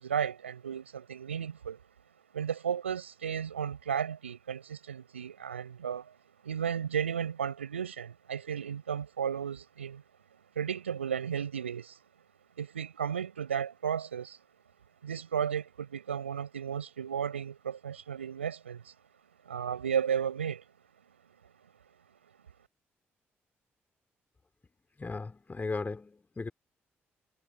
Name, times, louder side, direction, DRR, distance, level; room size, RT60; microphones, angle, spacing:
voice 1, 0.0-1.8 2.3-6.2 6.4-10.0 10.5-12.0 12.6-14.4 15.0-18.9 19.4-20.6, right 8 dB, 80° right, 6.5 m, -34 dB
voice 2, 25.0-26.5, left 3 dB, 25° left, 4.5 m, -36 dB
figure-of-eight pair, 40°, 6 cm